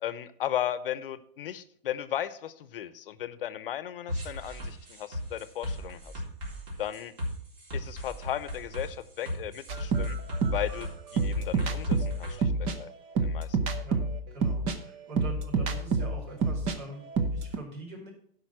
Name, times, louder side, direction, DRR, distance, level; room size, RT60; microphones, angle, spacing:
voice 1, 0.0-6.1 6.8-7.1 7.7-10.2 10.5-12.9 13.2-13.6, left 11 dB, 65° left, 14 dB, 0.8 m, -36 dB
sound 1, 4.1-12.4, left 1 dB, 35° right, 3.8 m, -37 dB
sound 2, 9.7-16.8 17.0-17.6, right 4 dB, 20° right, 0.6 m, -28 dB
voice 2, 14.3-17.0 17.3-18.1, right 1 dB, 50° right, -1 dB, 4.9 m, -43 dB
11.5 x 5.3 x 6.2 m, 0.64 s
hypercardioid pair, 160°, 30 cm